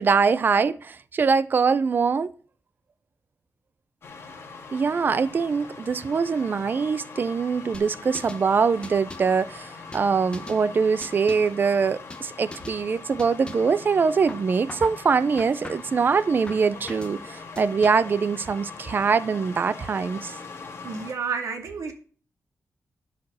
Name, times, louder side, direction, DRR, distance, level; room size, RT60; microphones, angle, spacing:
voice 1, 0.0-2.3 4.7-20.4, right 5 dB, 40° right, 0.5 m, -23 dB
sound 1, 4.0-21.1, left 4 dB, 50° left, 2.9 m, -42 dB
sound 2, 7.7-8.5 8.8-9.4 9.9-10.6 11.0-11.6 12.1-12.3 12.5-12.8 13.2-13.8 14.3-15.0 15.4-16.0 16.5-17.2 17.6-18.2, left 2 dB, 20° left, 1.1 m, -42 dB
voice 2, 20.8-21.9, right 5 dB, 85° right, 2.4 m, -30 dB
12.5 x 5.0 x 6.1 m
wide cardioid pair, 175°, 5 cm